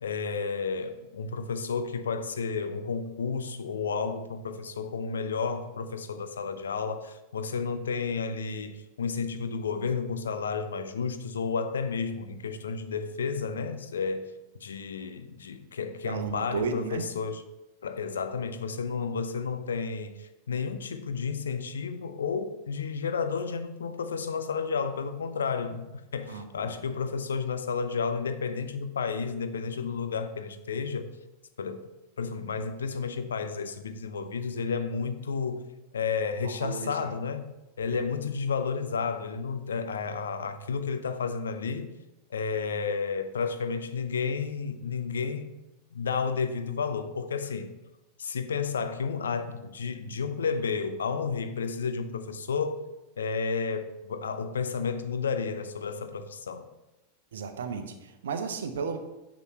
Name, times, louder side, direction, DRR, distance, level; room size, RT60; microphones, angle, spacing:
voice 1, 0.0-14.2 14.6-17.4 17.8-31.1 31.6-31.8 32.2-35.6 35.9-41.9 42.3-45.5 45.9-47.7 48.2-52.8 53.2-56.7, left 5 dB, 70° left, 0.6 m, -31 dB
voice 2, 16.0-17.0 26.3-26.7 36.4-37.1 37.9-38.0 57.3-59.0, right 5 dB, 65° right, 0.8 m, -34 dB
9.6 x 6.2 x 3.1 m
figure-of-eight pair, 90°, 0 cm